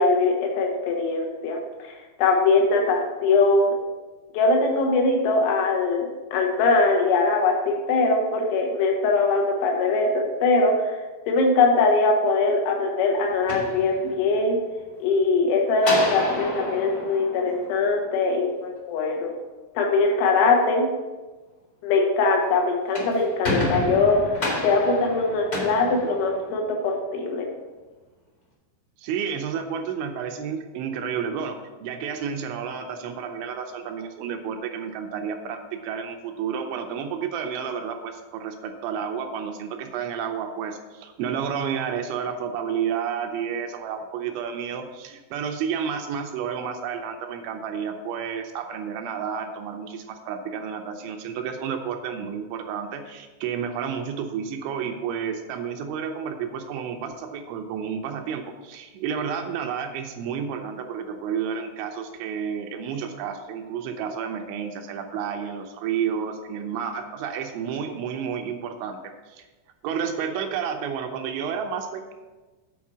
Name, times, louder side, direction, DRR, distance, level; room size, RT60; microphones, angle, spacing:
voice 1, 0.0-3.8 4.3-11.0 11.3-14.6 15.0-19.3 19.8-20.9 21.8-27.5, left 3 dB, 80° left, 0 dB, 3.5 m, -22 dB
sound 1, 13.3-14.5 15.8-18.3 22.7-26.8, left 1 dB, 50° left, 1.1 m, -30 dB
voice 2, 29.0-69.4 69.8-72.1, right 7 dB, 80° right, 5 dB, 2.8 m, -31 dB
8.3 x 4.5 x 6.0 m, 1.2 s
omnidirectional pair, 5.4 m